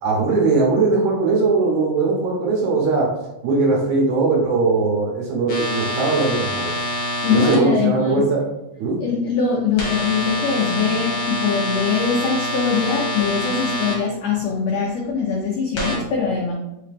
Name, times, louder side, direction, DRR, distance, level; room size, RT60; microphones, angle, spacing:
voice 1, 0.0-3.1 3.4-6.7 7.3-8.4 8.8-9.0, right 3 dB, 70° right, -2 dB, 2.2 m, -19 dB
sound 1, 5.5-7.6 9.8-13.9 15.8-16.0, left 1 dB, 55° left, 1.5 m, -26 dB
voice 2, 7.2-8.2 9.0-16.5, left 5 dB, 80° left, -2 dB, 1.5 m, -22 dB
5.3 x 2.8 x 3.4 m, 0.88 s
omnidirectional pair, 3.9 m